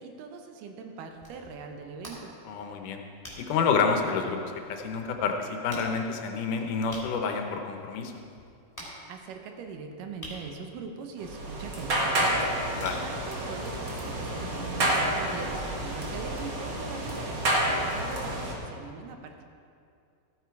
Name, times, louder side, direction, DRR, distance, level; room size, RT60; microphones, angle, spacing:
voice 1, 0.0-2.3 9.1-19.4, right 5 dB, 90° right, 4 dB, 2.6 m, -41 dB
sound 1, 1.0-14.3, equal, 5° left, 2.5 m, -50 dB
voice 2, 2.5-3.0 3.4-4.4 4.7-8.1 12.8-13.0, left 5 dB, 80° left, 4 dB, 2.4 m, -28 dB
sound 2, 11.2-18.5, right 1 dB, 45° right, 1.7 m, -29 dB
14.0 x 9.3 x 4.7 m, 2.5 s
omnidirectional pair, 3.7 m